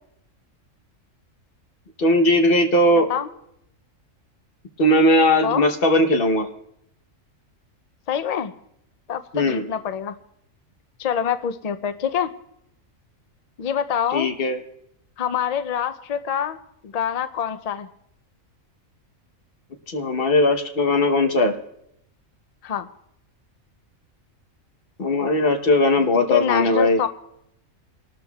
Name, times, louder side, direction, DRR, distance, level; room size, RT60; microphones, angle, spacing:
voice 1, 2.0-3.1 4.8-6.5 9.3-9.7 14.1-14.6 19.9-21.5 25.0-27.0, left 1 dB, 45° left, 5 dB, 1.2 m, -18 dB
voice 2, 8.1-8.5 9.1-10.1 11.0-12.3 13.6-14.3 15.2-16.6 16.8-17.9 22.6-22.9 26.3-27.1, left 8 dB, 75° left, 9 dB, 0.3 m, -25 dB
29.5 x 12.5 x 2.3 m, 0.78 s
omnidirectional pair, 1.4 m